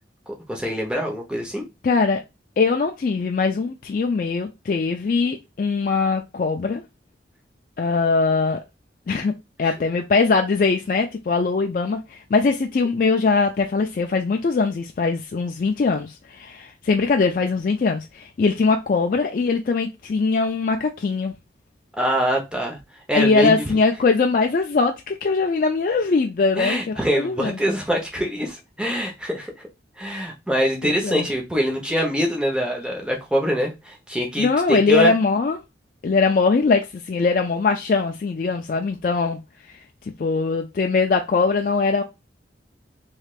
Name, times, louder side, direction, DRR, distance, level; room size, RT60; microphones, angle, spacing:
voice 1, 0.3-1.6 9.6-9.7 22.0-22.8 23.1-23.8 26.6-29.5 30.0-35.1, equal, 5° right, 0.8 m, -24 dB
voice 2, 1.8-2.2 2.6-6.8 7.8-8.6 9.1-9.3 9.6-21.4 23.1-27.6 30.8-31.3 34.4-35.6 36.0-39.4 39.7-39.8 40.2-42.0, left 4 dB, 50° left, 0.3 m, -21 dB
3.3 x 3.1 x 2.4 m
head